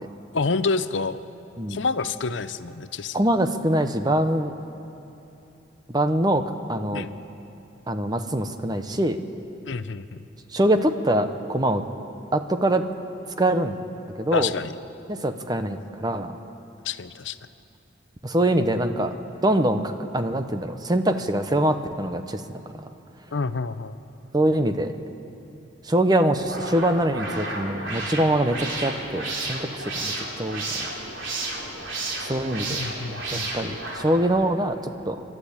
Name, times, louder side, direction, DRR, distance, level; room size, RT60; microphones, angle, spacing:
voice 1, 0.3-1.2 1.7-3.3 6.9-7.1 9.7-10.0 14.3-14.7 16.8-17.4 23.3-24.0 32.7-33.8, left 4 dB, 75° left, 12 dB, 0.7 m, -28 dB
voice 2, 3.1-4.5 5.9-7.1 7.9-9.2 10.5-11.8 12.3-12.8 13.4-13.8 14.2-14.5 15.1-16.4 18.2-19.1 19.4-22.4 22.7-22.9 24.3-24.9 25.8-30.9 32.2-32.8 33.3-35.2, right 1 dB, 20° right, 8 dB, 0.8 m, -24 dB
sound 1, 26.3-34.5, right 2 dB, 80° right, 3.4 m, -32 dB
28.0 x 12.5 x 8.7 m, 2.9 s
head